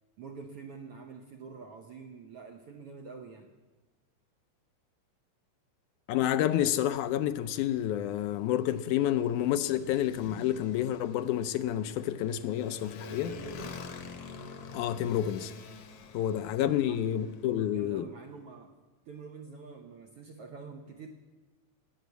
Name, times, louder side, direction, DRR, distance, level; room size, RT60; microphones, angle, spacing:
voice 1, 0.2-3.5 13.0-13.8 16.2-16.4 16.6-18.7 19.1-21.1, right 5 dB, 70° right, 1.4 m, -46 dB
voice 2, 6.1-13.3 14.7-15.5 16.1-18.1, left 11 dB, 80° left, 2.0 m, -29 dB
Motorcycle, 7.1-17.6, left 4 dB, 60° left, 1.8 m, -48 dB
19.0 x 7.1 x 8.1 m
omnidirectional pair, 3.6 m